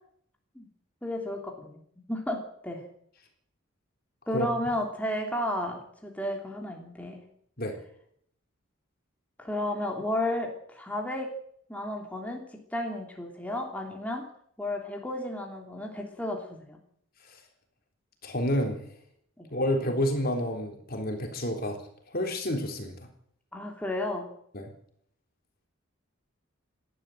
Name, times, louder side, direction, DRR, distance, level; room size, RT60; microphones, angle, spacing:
voice 1, 1.0-1.8 2.1-2.8 4.3-7.2 9.4-11.3 11.7-12.4 12.7-14.3 14.6-16.8 19.4-19.5 23.5-24.3, left 1 dB, 5° left, 0 dB, 3.1 m, -32 dB
voice 2, 18.2-18.8 19.5-21.8 22.1-22.9 24.5-24.7, left 1 dB, 45° left, 3 dB, 3.8 m, -29 dB
29.0 x 12.0 x 7.9 m, 0.68 s
head